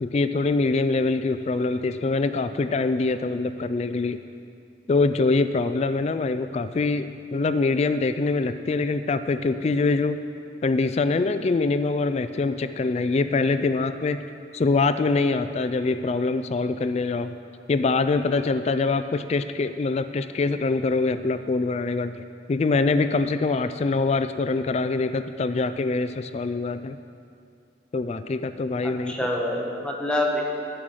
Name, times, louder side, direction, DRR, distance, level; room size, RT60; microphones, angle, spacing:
voice 1, 0.0-4.2 4.9-10.2 10.6-14.3 14.5-17.4 17.7-27.0 27.9-29.2, left 3 dB, 35° left, 11 dB, 0.3 m, -24 dB
voice 2, 28.8-30.4, left 1 dB, 5° left, -1 dB, 1.1 m, -26 dB
11.0 x 6.3 x 9.0 m, 2.4 s
head